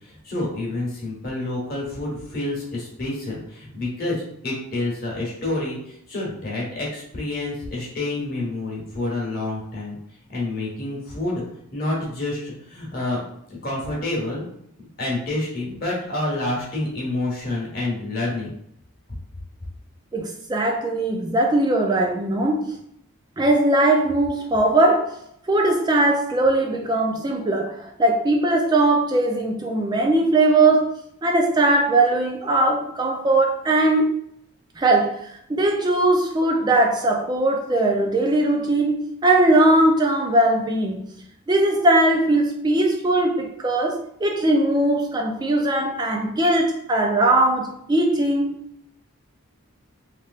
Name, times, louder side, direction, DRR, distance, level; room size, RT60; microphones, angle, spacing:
voice 1, 0.0-10.0 10.3-11.4 11.7-13.2 13.6-14.4 15.0-18.5, left 2 dB, 45° left, 1.1 m, -28 dB
voice 2, 20.1-22.7 23.4-25.2 25.5-30.9 31.2-34.2 34.8-41.1 41.5-48.6, right 2 dB, 20° right, 0.3 m, -20 dB
3.2 x 3.1 x 2.4 m
head